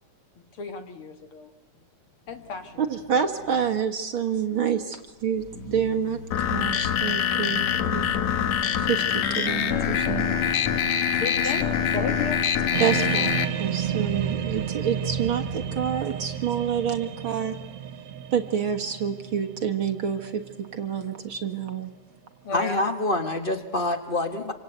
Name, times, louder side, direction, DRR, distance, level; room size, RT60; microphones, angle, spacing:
voice 1, 0.4-1.5 2.3-2.8 11.1-12.4 22.4-22.8, left 5 dB, 50° left, 7 dB, 2.2 m, -34 dB
sound 1, 2.3-4.0 4.6-14.4, left 3 dB, 30° left, 1.9 m, -41 dB
voice 2, 2.8-6.2 6.5-8.1 8.8-10.4 11.4-11.5 12.8-17.6 18.3-21.9, right 7 dB, 50° right, 6 dB, 1.9 m, -28 dB
sound 2, 6.3-13.4, left 8 dB, 65° left, 2.4 m, -24 dB
sound 3, 12.7-21.7, right 9 dB, 70° right, 2.6 m, -32 dB
voice 3, 22.5-24.5, left 2 dB, 90° left, 7 dB, 0.4 m, -26 dB
27.5 x 26.5 x 8.1 m, 1.0 s
omnidirectional pair, 3.5 m